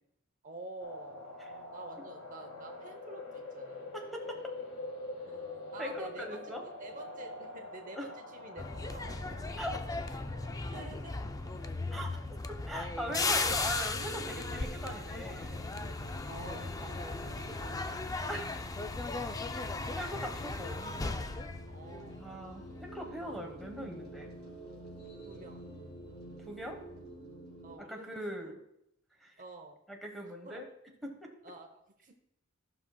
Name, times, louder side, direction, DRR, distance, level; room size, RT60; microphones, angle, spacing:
voice 1, 0.4-1.3 1.7-3.9 5.3-5.5 5.7-6.5 6.8-9.6 10.7-11.3 13.4-13.6 16.3-18.1 21.6-22.3 25.3-25.6 27.6-28.5 29.4-29.8 30.2-30.6 31.4-32.1, right 2 dB, 40° right, 4 dB, 0.8 m, -49 dB
sound 1, 0.8-12.1, left 2 dB, 85° left, 1.5 m, -45 dB
voice 2, 3.9-4.4 5.8-6.6 7.9-8.1 9.6-9.8 11.9-12.1 12.7-15.7 18.3-18.5 20.0-20.9 22.2-24.3 26.5-26.8 27.8-28.6 29.2-29.4 29.9-30.7 31.0-31.3, equal, ahead, 2 dB, 1.1 m, -40 dB
sound 2, 8.6-22.6 22.9-23.2, left 3 dB, 20° left, 0.4 m, -37 dB
sound 3, 14.0-27.8, equal, 55° left, 2.7 m, -48 dB
14.5 x 5.9 x 2.3 m, 0.79 s
head